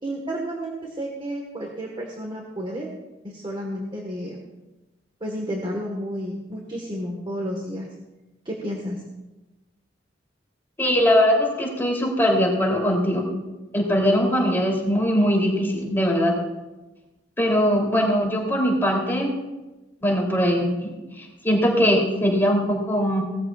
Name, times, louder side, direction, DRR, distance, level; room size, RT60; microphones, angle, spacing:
voice 1, 0.0-2.9 3.2-4.4 5.2-7.9 8.4-9.0, equal, 25° right, 0 dB, 1.4 m, -31 dB
voice 2, 10.8-13.3 13.7-16.4 17.4-19.3 20.0-20.9 21.2-23.2, equal, 10° left, -3 dB, 3.1 m, -21 dB
18.5 x 13.5 x 2.4 m, 1.1 s
head